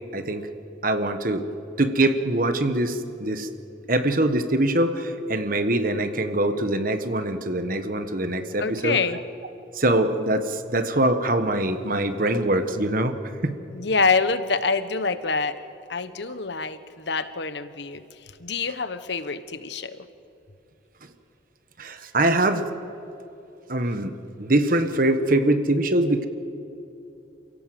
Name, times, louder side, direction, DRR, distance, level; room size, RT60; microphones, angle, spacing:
voice 1, 0.1-0.5 0.8-1.4 1.8-3.5 3.9-9.0 9.7-13.1 13.4-13.6 21.8-22.6 23.7-24.1 24.4-26.3, right 1 dB, 45° right, 8 dB, 1.4 m, -23 dB
voice 2, 8.6-9.2 13.7-15.6 15.9-18.0 18.4-20.0, left 4 dB, 65° left, 12 dB, 1.1 m, -26 dB
29.0 x 17.0 x 7.7 m, 2.8 s
head